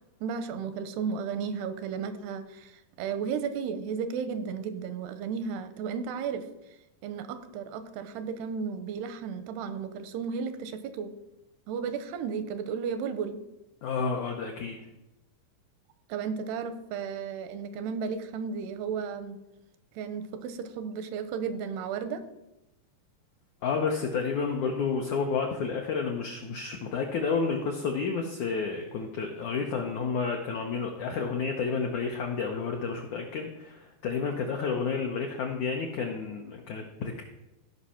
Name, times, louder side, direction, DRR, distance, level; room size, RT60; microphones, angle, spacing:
voice 1, 0.2-6.5 7.0-11.1 11.7-13.4 16.1-19.4 20.0-22.2, right 6 dB, 90° right, 10 dB, 2.8 m, -34 dB
voice 2, 13.8-14.8 23.6-37.2, left 5 dB, 90° left, 2 dB, 1.7 m, -30 dB
15.5 x 5.5 x 5.7 m, 0.92 s
omnidirectional pair, 4.7 m